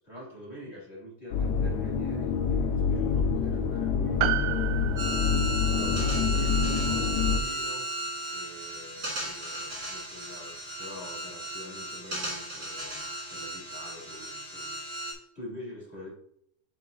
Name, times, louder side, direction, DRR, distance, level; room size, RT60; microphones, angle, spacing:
voice 1, 0.0-4.6 4.9-5.1 5.7-7.9 8.3-16.1, left 1 dB, 20° left, -5 dB, 3.3 m, -45 dB
sound 1, 1.3-7.4, left 6 dB, 75° left, 2.2 m, -27 dB
Piano, 4.2-8.8 9.1-9.2, right 14 dB, 80° right, 1.7 m, -35 dB
sound 2, 5.0-15.1, right 2 dB, 30° right, 2.7 m, -35 dB
7.7 x 7.3 x 2.5 m, 0.68 s
omnidirectional pair, 3.6 m